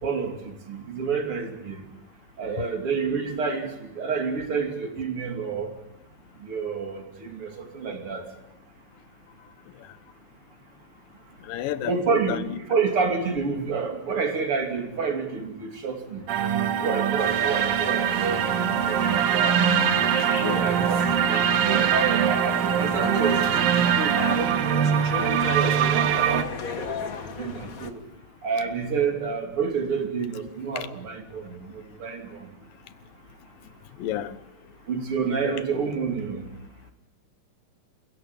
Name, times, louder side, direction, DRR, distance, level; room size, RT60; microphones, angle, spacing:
voice 1, 0.0-1.8 2.4-5.7 6.4-8.2 11.8-16.3 16.8-18.4 18.8-19.6 20.5-24.8 25.4-27.9 28.4-32.5 34.9-36.5, right 5 dB, 40° right, 4 dB, 3.4 m, -29 dB
voice 2, 11.4-12.0 12.3-12.6 20.4-20.9 30.8-30.9 34.0-34.4, left 12 dB, 85° left, 13 dB, 2.7 m, -31 dB
sound 1, 16.3-26.4, right 8 dB, 65° right, 1.6 m, -23 dB
sound 2, 17.2-27.9, left 5 dB, 65° left, 0.8 m, -36 dB
28.0 x 16.5 x 7.5 m, 0.89 s
omnidirectional pair, 3.9 m